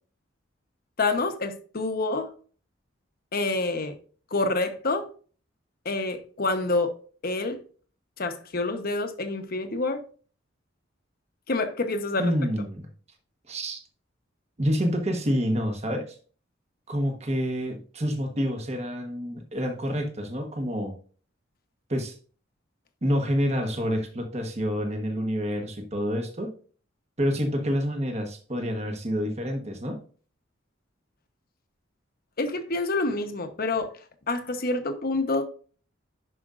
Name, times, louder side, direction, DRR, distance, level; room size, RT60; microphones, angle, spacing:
voice 1, 1.0-2.3 3.3-4.0 4.3-5.1 5.8-6.9 7.2-7.6 8.2-10.0 11.5-12.3 32.4-33.9 34.3-35.5, left 2 dB, 50° left, 1.0 m, -27 dB
voice 2, 12.2-12.9 13.5-13.8 14.6-16.2 16.9-20.9 21.9-22.1 23.0-26.5 27.2-30.0, equal, 35° right, 1.2 m, -28 dB
11.0 x 5.1 x 2.5 m
head